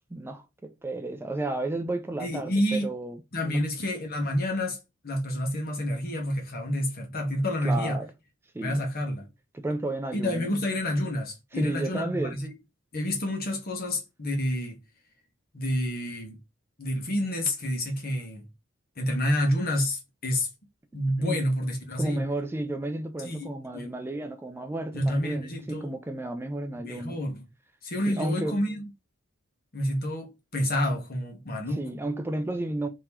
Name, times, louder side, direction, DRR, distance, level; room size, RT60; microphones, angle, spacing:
voice 1, 0.1-3.6 7.6-8.1 8.5-8.9 9.5-10.5 11.5-12.4 21.2-21.5 22.0-27.2 28.1-28.6 31.7-32.9, right 2 dB, 10° right, 0.3 m, -32 dB
voice 2, 2.2-2.9 3.3-4.8 5.0-8.0 8.6-9.3 10.1-12.5 12.9-14.8 15.5-16.4 16.8-18.4 19.0-20.5 20.9-22.2 23.2-23.5 23.7-23.9 24.9-25.9 26.8-27.4 27.8-28.8 29.7-31.8, left 1 dB, 50° left, 1.1 m, -29 dB
3.6 x 2.9 x 2.9 m
head